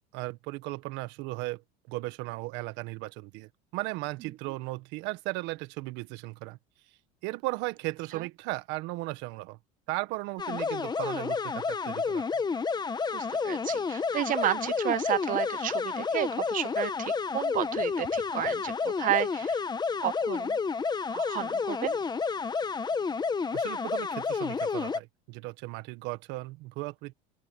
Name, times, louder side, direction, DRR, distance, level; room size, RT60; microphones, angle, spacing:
voice 1, 0.0-1.6 1.9-6.6 7.2-9.6 9.9-12.4 23.5-27.1, right 21 dB, 70° right, 1.6 m, -36 dB
sound 1, 10.4-25.0, left 5 dB, 20° left, 1.3 m, -30 dB
voice 2, 13.1-19.6 20.0-20.6 21.1-22.0, right 13 dB, 45° right, 0.7 m, -32 dB
open air
supercardioid pair, 100°, 19 cm